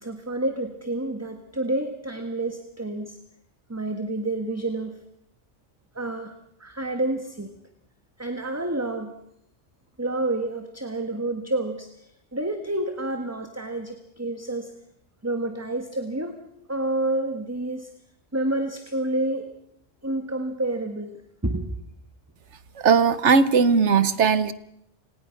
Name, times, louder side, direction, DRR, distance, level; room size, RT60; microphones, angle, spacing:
voice 1, 0.0-3.2 3.7-5.0 5.9-6.3 6.6-7.5 8.2-9.1 10.0-11.9 12.3-14.7 15.2-16.4 16.7-17.9 18.3-19.5 20.0-21.1 21.4-21.7, right 2 dB, 15° right, 6 dB, 1.5 m, -29 dB
voice 2, 22.8-24.5, right 5 dB, 70° right, 15 dB, 1.3 m, -18 dB
30.0 x 18.5 x 5.9 m, 0.76 s
omnidirectional pair, 1.3 m